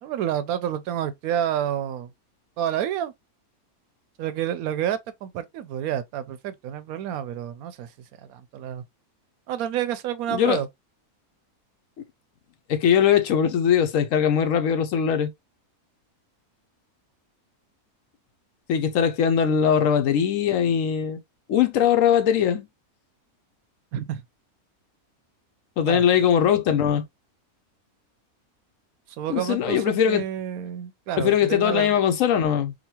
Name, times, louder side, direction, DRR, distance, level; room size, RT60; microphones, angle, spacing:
voice 1, 0.0-2.1 2.6-3.1 4.2-7.9 8.2-8.8 9.5-10.7 23.9-24.2 25.9-26.1 29.2-32.0, right 10 dB, 80° right, 1.0 m, -29 dB
voice 2, 10.3-10.6 12.7-15.3 18.7-21.2 21.5-22.7 25.8-27.0 29.3-30.2 31.2-32.7, left 8 dB, 70° left, 0.9 m, -21 dB
3.9 x 2.1 x 2.8 m
omnidirectional pair, 1.5 m